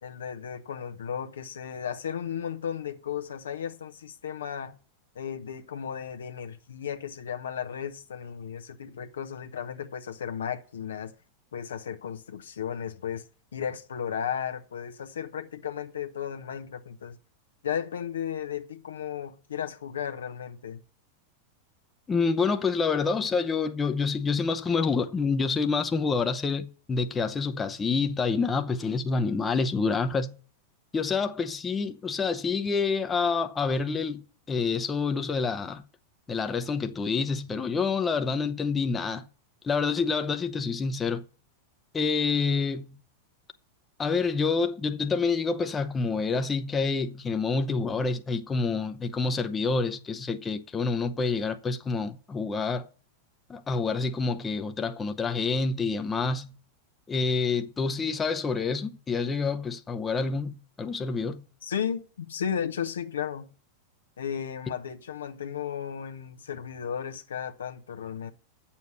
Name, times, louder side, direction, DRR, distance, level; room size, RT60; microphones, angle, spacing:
voice 1, 0.0-4.7 5.1-11.1 11.5-13.2 13.5-17.2 17.6-20.8 61.6-63.5 64.2-68.3, left 8 dB, 65° left, 0.9 m, -34 dB
voice 2, 22.1-30.4 30.9-35.8 36.3-39.3 39.6-41.2 41.9-43.0 44.0-52.9 53.5-56.6 57.1-61.4, left 4 dB, 15° left, 0.8 m, -27 dB
9.3 x 7.1 x 6.1 m
figure-of-eight pair, 90°, 0 cm